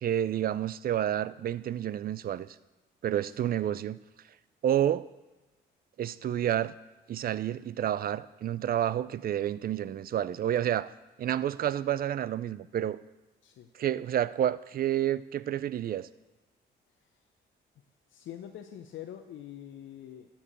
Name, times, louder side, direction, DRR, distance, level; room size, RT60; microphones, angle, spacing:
voice 1, 0.0-2.6 3.0-4.0 4.6-5.1 6.0-6.7 7.1-10.9 11.2-13.0 13.7-16.1, right 11 dB, 50° right, 17 dB, 0.4 m, -29 dB
voice 2, 18.1-20.3, left 10 dB, 75° left, 5 dB, 0.7 m, -44 dB
12.0 x 4.6 x 7.3 m, 1.1 s
cardioid pair, 90°, 20 cm